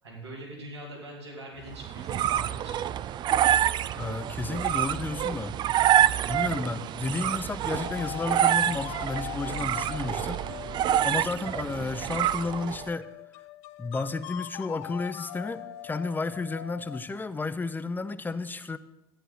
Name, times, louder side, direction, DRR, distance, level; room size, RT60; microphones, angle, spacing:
voice 1, 0.0-2.9 11.9-12.1, right 1 dB, 90° right, -4 dB, 3.3 m, -43 dB
sound 1, 1.7-12.9, right 11 dB, 35° right, 0.4 m, -27 dB
voice 2, 3.9-5.6 6.3-10.4 11.0-13.1 13.8-18.8, left 3 dB, 15° left, 12 dB, 0.7 m, -32 dB
sound 2, 7.8-17.2, left 14 dB, 55° left, 0.5 m, -42 dB
13.5 x 10.0 x 4.0 m, 0.91 s
hypercardioid pair, 80°, 14 cm